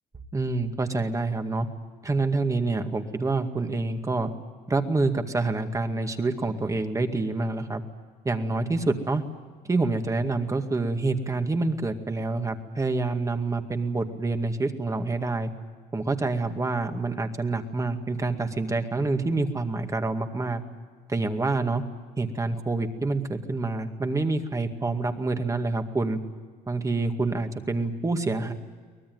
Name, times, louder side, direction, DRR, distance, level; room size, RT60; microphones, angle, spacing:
voice 1, 0.3-1.7 2.0-4.3 4.7-7.8 8.2-9.2 9.7-15.5 15.9-20.6 21.1-21.8 22.2-26.2 26.7-28.5, right 3 dB, 20° right, 6 dB, 2.1 m, -27 dB
24.0 x 19.5 x 9.4 m, 1.5 s
cardioid pair, 110°, 17 cm